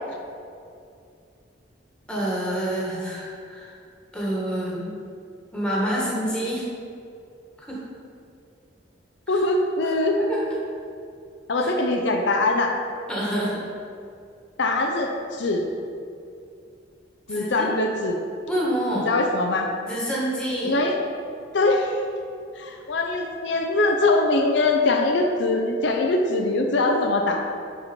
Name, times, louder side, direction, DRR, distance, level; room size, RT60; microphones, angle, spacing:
voice 1, 2.1-3.7 4.1-4.9 5.5-6.7 7.7-7.8 9.3-9.4 10.2-10.4 11.6-11.7 13.1-13.6 17.3-17.7 18.5-19.1 19.9-20.7, right 1 dB, 5° left, -5 dB, 1.6 m, -27 dB
voice 2, 9.3-10.1 11.5-12.7 14.6-15.6 17.3-18.2 19.0-19.7 20.6-20.9 21.5-22.1 22.6-27.4, left 2 dB, 65° left, 2 dB, 0.6 m, -22 dB
10.0 x 4.3 x 4.4 m, 2.4 s
head